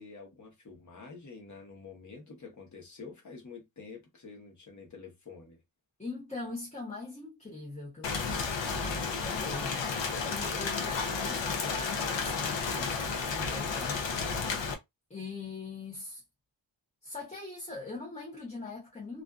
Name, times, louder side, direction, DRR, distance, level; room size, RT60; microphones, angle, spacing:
voice 1, 0.0-5.6 14.2-14.6, left 4 dB, 40° left, 1.0 m, -48 dB
voice 2, 6.0-14.2 15.1-16.2 17.0-19.2, left 3 dB, 15° left, 0.8 m, -42 dB
Rain, 8.0-14.7, left 5 dB, 75° left, 0.7 m, -32 dB
2.5 x 2.4 x 2.3 m
wide cardioid pair, 155°, 46 cm